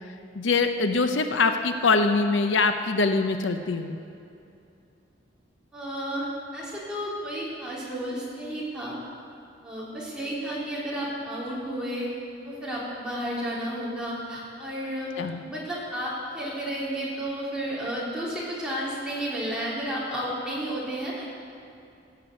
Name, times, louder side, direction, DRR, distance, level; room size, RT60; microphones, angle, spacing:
voice 1, 0.3-4.0 15.2-15.4, left 3 dB, 85° left, 7 dB, 0.7 m, -23 dB
voice 2, 5.7-9.0 9.6-12.1 12.4-15.1 15.5-21.5, equal, 5° right, -8 dB, 3.6 m, -32 dB
16.5 x 6.8 x 8.1 m, 2.6 s
head